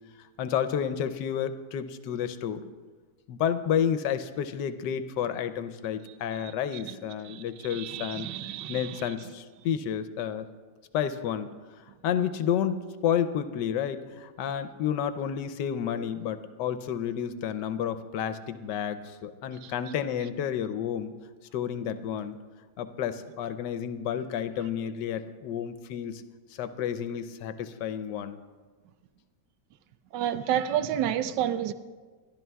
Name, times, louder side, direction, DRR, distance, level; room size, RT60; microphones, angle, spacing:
voice 1, 0.4-2.7 3.3-8.3 8.7-10.5 10.9-11.5 12.0-21.1 21.5-22.4 22.8-26.2 26.5-28.4, left 8 dB, 85° left, 1.3 m, -30 dB
voice 2, 7.7-9.0 19.6-19.7 30.1-31.7, right 10 dB, 85° right, 1.2 m, -30 dB
24.5 x 12.0 x 2.3 m
omnidirectional pair, 1.9 m